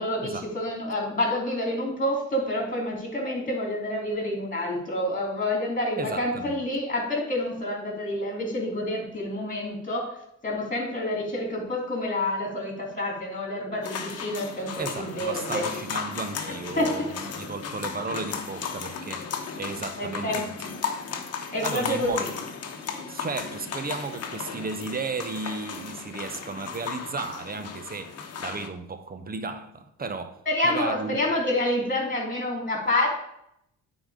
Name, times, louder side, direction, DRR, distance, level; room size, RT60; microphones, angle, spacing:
voice 1, 0.0-10.1 10.4-15.6 16.8-16.9 20.0-20.4 21.5-22.3 30.5-33.1, left 1 dB, 25° left, 3.0 m, -28 dB
voice 2, 6.0-6.5 14.8-19.3 19.6-20.7 21.6-22.3 23.1-31.2, right 4 dB, 30° right, 0.8 m, -34 dB
sound 1, 13.8-28.7, left 6 dB, 55° left, 1.0 m, -35 dB
8.9 x 4.0 x 4.9 m
cardioid pair, 90°, 30 cm